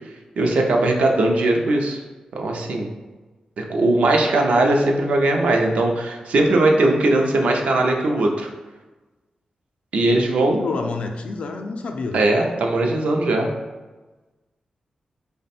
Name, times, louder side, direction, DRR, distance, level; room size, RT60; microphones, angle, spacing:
voice 1, 0.4-2.0 2.3-2.9 3.6-8.5 9.9-10.6 12.1-13.5, right 2 dB, 85° right, 1 dB, 0.5 m, -19 dB
voice 2, 10.6-12.3, left 3 dB, 60° left, 4 dB, 0.4 m, -28 dB
3.2 x 2.1 x 4.2 m, 1.2 s
wide cardioid pair, 120°, 2 cm